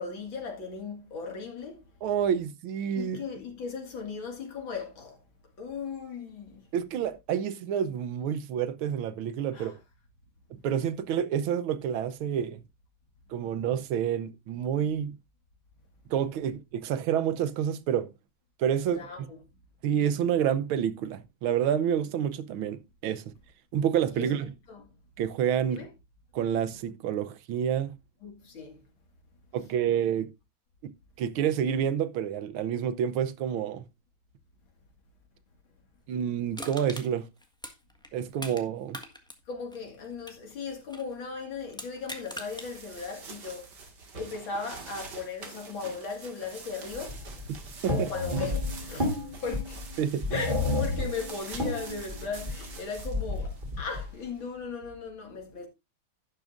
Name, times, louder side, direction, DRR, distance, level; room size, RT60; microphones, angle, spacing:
voice 1, 0.0-1.8 3.0-5.2 5.6-6.6 9.5-9.8 18.9-19.4 24.1-24.3 24.7-24.8 25.7-25.9 28.2-28.8 39.5-43.7 44.1-47.2 47.9-49.8 50.3-55.7, left 5 dB, 70° left, 2.8 m, -37 dB
voice 2, 2.0-3.2 6.7-9.7 10.5-12.6 13.3-15.2 16.1-18.1 18.6-19.3 19.8-23.2 23.7-24.5 25.2-25.8 26.3-28.0 29.5-30.3 30.8-30.9 31.2-33.9 36.1-37.3 38.1-39.0 47.8-48.1 50.0-50.3, right 9 dB, 80° right, 1.6 m, -28 dB
Crushing, 36.5-38.6 38.9-41.1 41.7-42.7 43.2-43.3, equal, 5° left, 1.1 m, -42 dB
sound 1, 41.9-54.5, right 4 dB, 55° right, 2.5 m, -46 dB
sound 2, 46.9-54.1, left 2 dB, 25° right, 3.3 m, -31 dB
11.5 x 10.5 x 2.5 m
omnidirectional pair, 2.3 m